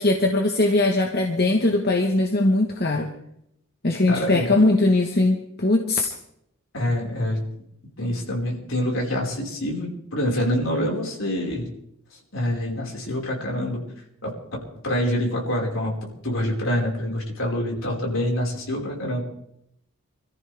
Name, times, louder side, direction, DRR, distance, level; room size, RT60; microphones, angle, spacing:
voice 1, 0.0-3.1 3.8-6.1, left 2 dB, 45° left, 3 dB, 1.3 m, -20 dB
voice 2, 4.1-4.5 6.7-7.4 8.0-11.7 12.3-13.8 14.2-14.3 14.8-15.9 16.2-19.2, left 1 dB, 70° left, -2 dB, 4.9 m, -26 dB
26.5 x 14.0 x 3.5 m, 0.76 s
head